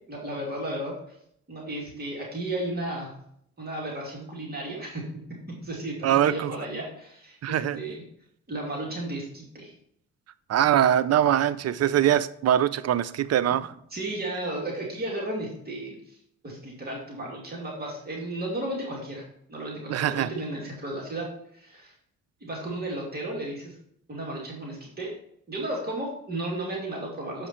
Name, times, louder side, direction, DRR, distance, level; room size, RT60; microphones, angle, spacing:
voice 1, 0.1-0.9 1.5-3.1 3.6-5.1 5.5-8.0 8.5-9.7 13.9-16.2 16.4-21.9 22.4-23.8 24.1-25.1 25.5-27.5, right 1 dB, 30° right, -2 dB, 2.6 m, -34 dB
voice 2, 6.0-6.5 7.4-7.8 10.5-13.7 19.9-20.3, right 10 dB, 55° right, 15 dB, 0.5 m, -22 dB
7.3 x 5.1 x 4.4 m, 0.69 s
cardioid pair, 90°, 30 cm